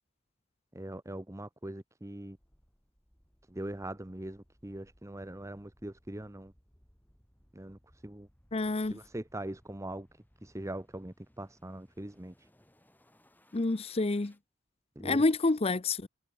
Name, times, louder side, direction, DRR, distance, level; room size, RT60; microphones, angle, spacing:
voice 1, 0.7-2.4 3.5-6.5 7.5-8.3 8.8-10.1 10.4-12.5 15.0-15.2, right 1 dB, 15° right, 1.0 m, -42 dB
sound 1, 2.3-14.4, equal, 10° left, 5.1 m, -66 dB
voice 2, 8.5-9.0 13.5-14.3 15.0-16.1, left 3 dB, 30° left, 0.6 m, -28 dB
head